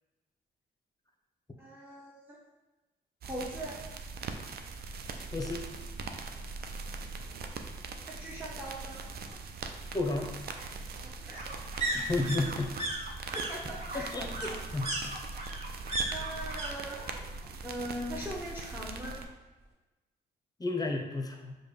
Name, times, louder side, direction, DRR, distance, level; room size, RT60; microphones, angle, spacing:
voice 1, 1.6-2.4 3.2-3.8 8.1-9.0 11.2-11.6 13.3-14.1 16.1-17.0 17.6-19.2, right 1 dB, 10° right, -5 dB, 0.9 m, -40 dB
sound 1, 3.2-19.3, right 4 dB, 55° right, 0.4 m, -41 dB
sound 2, 5.8-5.9 6.3-6.4 6.6-7.6 8.9-16.7 16.9-17.5 17.8-18.8 19.1-19.2, right 2 dB, 35° right, 1.4 m, -38 dB
voice 2, 9.9-10.3 11.9-12.7 13.9-14.5 14.7-15.3 20.6-21.6, left 2 dB, 20° left, 2 dB, 0.8 m, -32 dB
4.9 x 2.3 x 3.2 m, 1.1 s
supercardioid pair, 55°, 19 cm